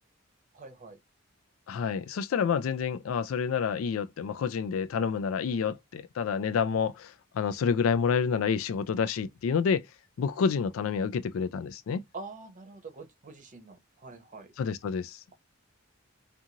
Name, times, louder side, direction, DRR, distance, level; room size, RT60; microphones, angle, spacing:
voice 1, 0.5-1.0 12.1-14.5, right 3 dB, 40° right, 0.7 m, -45 dB
voice 2, 1.7-9.9 10.2-12.0 14.6-15.2, left 6 dB, 80° left, 0.3 m, -28 dB
2.6 x 2.4 x 2.8 m
head